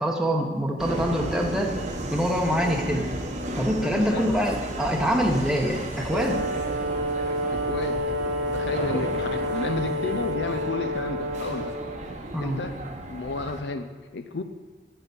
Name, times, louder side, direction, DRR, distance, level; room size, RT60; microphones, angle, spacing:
voice 1, 0.0-1.7 2.1-3.1 3.6-6.4 8.9-9.0 12.3-12.6, equal, 5° right, 0 dB, 0.9 m, -25 dB
Subway metro underground, 0.8-13.6, right 1 dB, 45° right, 1.0 m, -34 dB
voice 2, 3.8-4.4 7.5-8.1 8.5-11.8 12.4-12.8 13.1-14.4, left 3 dB, 70° left, 8 dB, 0.6 m, -32 dB
sound 1, 5.2-10.3, equal, 30° left, 2.3 m, -47 dB
Brass instrument, 6.0-12.0, equal, 80° right, 0.9 m, -29 dB
8.8 x 6.8 x 6.9 m, 1.4 s
head